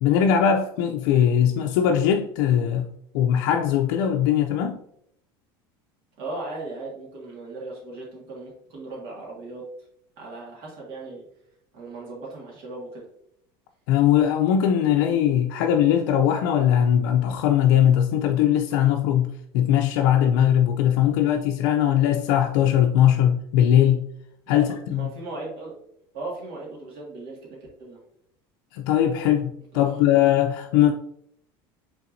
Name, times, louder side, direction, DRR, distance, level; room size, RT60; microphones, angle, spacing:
voice 1, 0.0-2.9 3.1-4.8 13.9-24.1 24.5-25.1 28.7-30.9, left 10 dB, 75° left, 0.4 m, -20 dB
voice 2, 6.2-9.6 10.2-11.3 11.7-13.1 24.5-25.7 26.1-28.0 29.7-29.9, right 2 dB, 55° right, 1.8 m, -37 dB
5.7 x 3.5 x 2.6 m
cardioid pair, 160°, 11 cm